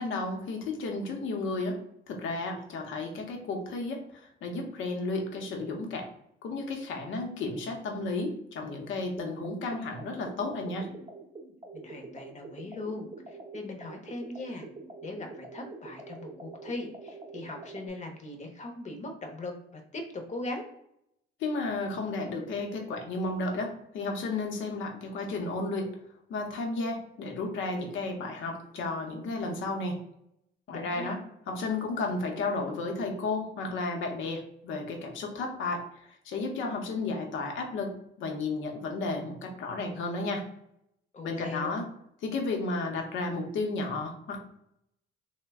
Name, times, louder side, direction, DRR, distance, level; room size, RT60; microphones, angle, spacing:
voice 1, 0.0-1.8 2.1-6.1 6.4-10.9 21.4-25.9 26.3-30.0 30.7-31.2 31.5-35.8 36.3-40.4 41.2-41.9 42.2-44.4, left 3 dB, 75° left, 3 dB, 0.8 m, -33 dB
sound 1, 9.2-17.9, right 3 dB, 25° right, 0.7 m, -45 dB
voice 2, 11.7-14.7 15.0-20.6 30.7-31.2 41.1-41.8, left 2 dB, 35° left, 4 dB, 0.7 m, -39 dB
3.1 x 2.1 x 3.4 m, 0.77 s
cardioid pair, 90°, 20 cm